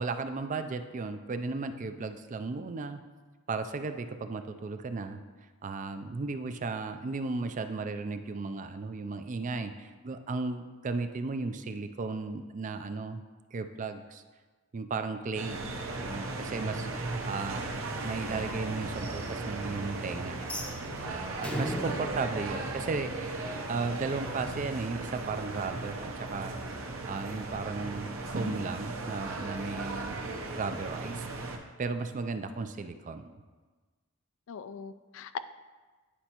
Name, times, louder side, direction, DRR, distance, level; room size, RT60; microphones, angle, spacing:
voice 1, 0.0-3.0 3.5-5.2 5.6-13.2 13.5-14.2 14.7-15.7 16.0-16.9 17.3-17.7 18.0-20.5 21.0-23.3 23.7-26.5 27.0-28.1 28.3-30.2 30.5-31.3 31.8-33.3, right 4 dB, 35° right, 8 dB, 0.4 m, -35 dB
sound 1, 15.3-31.6, right 2 dB, 65° right, 0.8 m, -37 dB
sound 2, 20.4-23.5, equal, 5° left, 0.6 m, -38 dB
voice 2, 21.7-22.1 34.5-35.4, left 7 dB, 65° left, 13 dB, 0.3 m, -41 dB
9.9 x 5.3 x 2.9 m, 1.3 s
head